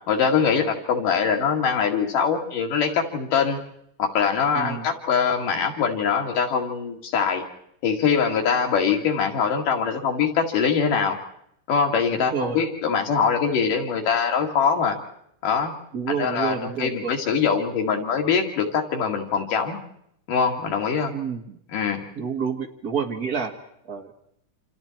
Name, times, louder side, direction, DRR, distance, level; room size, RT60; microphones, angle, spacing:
voice 1, 0.1-3.6 4.0-7.4 7.8-11.2 11.7-15.0 15.4-15.7 16.2-19.8 20.3-21.1 21.7-22.0, left 6 dB, 85° left, 2 dB, 4.0 m, -23 dB
voice 2, 4.5-4.9 12.2-12.6 15.9-17.1 21.1-21.6 22.2-23.5 23.9-24.1, right 6 dB, 35° right, 3 dB, 1.8 m, -28 dB
28.0 x 27.5 x 4.5 m, 0.74 s
omnidirectional pair, 3.6 m